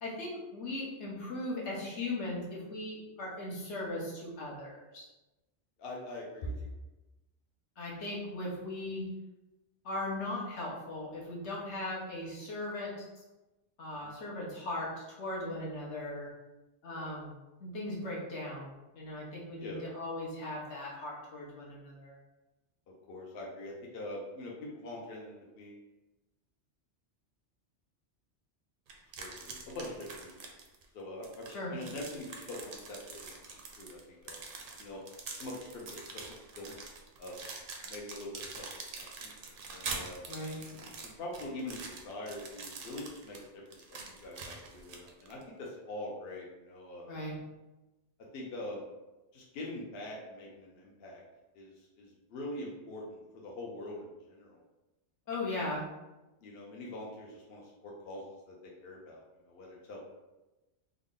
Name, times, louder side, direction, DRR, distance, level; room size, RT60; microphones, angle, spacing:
voice 1, 0.0-5.1 7.8-9.1 9.8-13.2 13.8-16.3 16.8-17.3 17.6-22.2 31.5-31.7 40.3-40.6 47.1-47.4 55.3-55.8, left 2 dB, 80° left, -5 dB, 1.2 m, -38 dB
voice 2, 5.8-6.7 13.9-14.1 16.9-17.1 19.6-19.8 23.1-25.8 29.2-30.4 30.9-34.4 34.8-35.0 35.3-36.3 36.6-36.8 37.2-37.4 37.8-38.7 38.9-39.4 39.7-40.2 40.7-47.1 48.3-48.9 49.3-51.2 51.5-54.6 56.4-60.1, left 1 dB, 65° left, -3 dB, 0.8 m, -44 dB
sound 1, 28.9-30.8 31.2-45.4, right 4 dB, 60° right, 0.7 m, -45 dB
3.5 x 2.0 x 3.6 m, 1.1 s
omnidirectional pair, 1.2 m